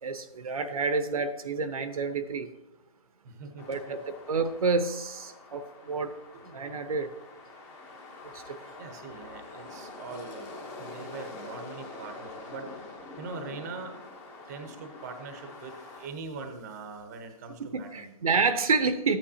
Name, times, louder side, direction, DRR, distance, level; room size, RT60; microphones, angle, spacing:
voice 1, 0.0-2.5 3.7-6.1 6.4-7.1 8.3-8.6 17.7-19.2, right 4 dB, 65° right, 10 dB, 0.9 m, -29 dB
voice 2, 3.2-4.0 6.3-6.4 8.8-14.0 14.5-18.1, right 4 dB, 25° right, 6 dB, 0.9 m, -42 dB
sound 1, 3.6-16.1, left 3 dB, 10° left, 1.0 m, -45 dB
14.0 x 8.7 x 2.8 m, 0.93 s
hypercardioid pair, 160°, 20 cm